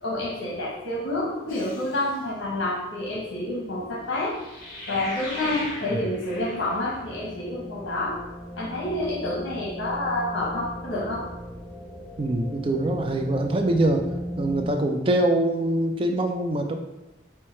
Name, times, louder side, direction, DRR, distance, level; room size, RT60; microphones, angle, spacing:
voice 1, 0.0-4.3 4.9-8.2 8.5-11.2, left 1 dB, 75° left, -4 dB, 0.9 m, -28 dB
sound 1, 1.5-2.2 4.3-7.2, left 1 dB, 50° left, 1.1 m, -39 dB
sound 2, 3.4-14.7, equal, 20° left, 1.2 m, -40 dB
voice 2, 12.2-14.1 14.4-16.7, right 1 dB, 30° right, 4 dB, 0.4 m, -24 dB
4.6 x 2.2 x 4.3 m, 0.97 s
head